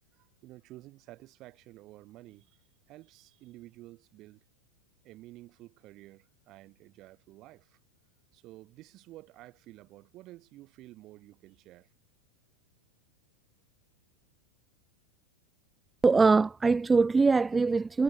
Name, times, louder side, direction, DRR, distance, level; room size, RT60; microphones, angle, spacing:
voice 1, 0.1-4.4 5.0-7.8 8.3-11.9, right 17 dB, 35° right, 7.8 m, -52 dB
voice 2, 16.0-18.0, right 4 dB, 10° right, 0.8 m, -22 dB
figure-of-eight pair, 90°, 0 cm